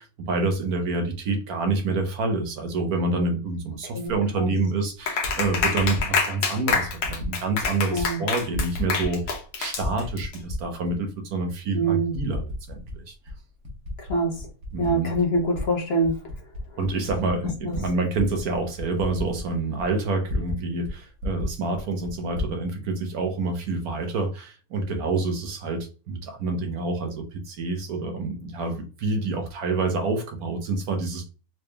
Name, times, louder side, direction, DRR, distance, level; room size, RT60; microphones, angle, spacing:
voice 1, 0.0-13.1 14.7-15.1 16.8-31.2, right 3 dB, 70° right, 1.4 m, -27 dB
voice 2, 3.9-4.5 7.9-8.2 11.7-12.1 14.0-14.4 14.8-16.2 17.6-17.7, right 1 dB, 45° left, 1.1 m, -24 dB
Typing, 4.1-4.2 5.0-6.1 6.7-7.3 7.6-8.1 8.4-9.4 9.7-10.9 11.5-11.6 12.1-13.0 13.3-15.6 16.0-20.6 20.8-20.9 21.2-22.5, left 2 dB, 90° right, 1.8 m, -33 dB
Clapping, 5.1-10.4, left 5 dB, 80° left, 1.4 m, -27 dB
4.7 x 3.2 x 2.3 m
omnidirectional pair, 1.6 m